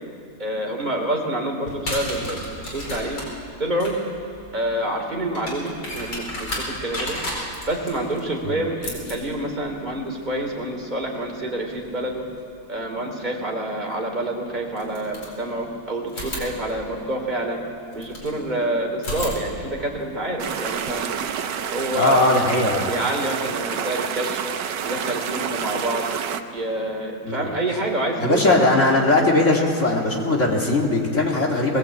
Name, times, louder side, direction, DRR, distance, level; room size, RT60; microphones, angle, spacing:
voice 1, 0.4-3.2 3.6-3.9 4.5-7.2 7.7-12.2 12.7-17.6 17.9-21.1 21.7-22.2 22.6-24.4 24.8-26.1 26.5-28.9, right 1 dB, 25° right, 0 dB, 3.3 m, -27 dB
sound 1, 1.6-12.4 13.9-14.0 14.7-15.7 16.1-18.4 18.9-21.0, left 1 dB, 85° left, 5.1 m, -35 dB
sound 2, 20.4-26.4, right 8 dB, 90° right, 1.5 m, -28 dB
voice 2, 21.9-22.9 27.2-27.5 28.2-31.8, left 2 dB, 45° left, -1 dB, 2.5 m, -19 dB
20.5 x 19.0 x 8.4 m, 2.4 s
omnidirectional pair, 1.9 m